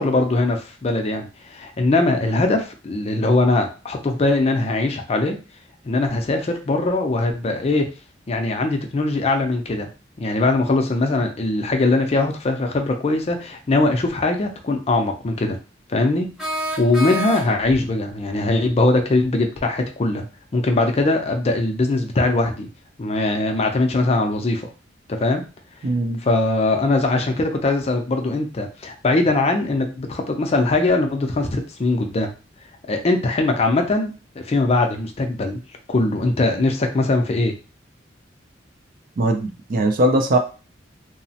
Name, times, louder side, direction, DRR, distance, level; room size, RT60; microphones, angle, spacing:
voice 1, 0.0-5.4 5.8-7.9 8.3-9.9 10.2-15.6 15.9-16.3 16.8-20.2 20.5-22.7 23.0-24.7 25.1-25.4 26.2-32.3 32.9-35.6 35.9-37.5, left 2 dB, 35° left, 4 dB, 0.4 m, -21 dB
sound 1, 16.4-17.8, right 1 dB, 5° right, 0.8 m, -28 dB
voice 2, 25.8-26.2 39.2-40.4, right 1 dB, 50° right, 5 dB, 0.4 m, -20 dB
2.9 x 2.0 x 2.7 m, 0.34 s
head